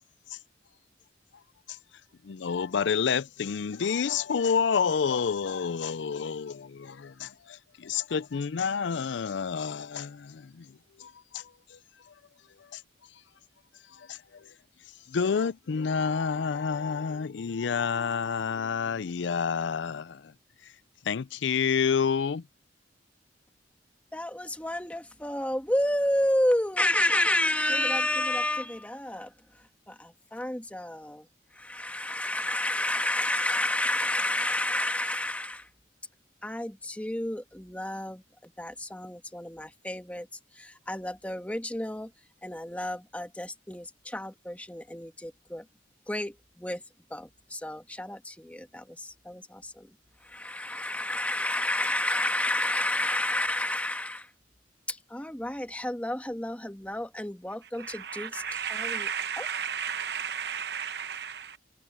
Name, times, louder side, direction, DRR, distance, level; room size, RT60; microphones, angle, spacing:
voice 1, 2.2-10.7 11.0-11.4 12.7-12.8 14.1-14.2 15.1-20.2 21.1-22.4, left 6 dB, 85° left, 0.5 m, -29 dB
voice 2, 24.1-29.3 29.9-31.3 31.5-35.7 36.4-40.3 40.5-42.1 42.4-45.6 46.1-46.8 47.1-49.9 50.2-54.3 54.9-59.1 59.4-59.5, left 1 dB, 10° left, 1.4 m, -30 dB
voice 3, 57.6-61.6, right 7 dB, 60° right, 1.0 m, -34 dB
head